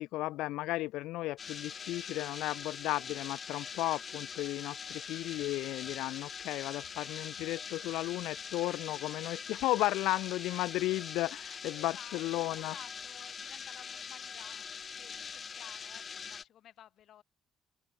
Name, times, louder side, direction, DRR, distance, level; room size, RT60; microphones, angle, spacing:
voice 1, 0.0-12.7, left 17 dB, 85° left, 1.6 m, -34 dB
sound 1, 1.4-16.4, left 6 dB, 40° left, 1.6 m, -43 dB
voice 2, 11.7-14.7 15.0-17.2, left 11 dB, 65° left, 5.4 m, -54 dB
cardioid pair, 90°, 0 cm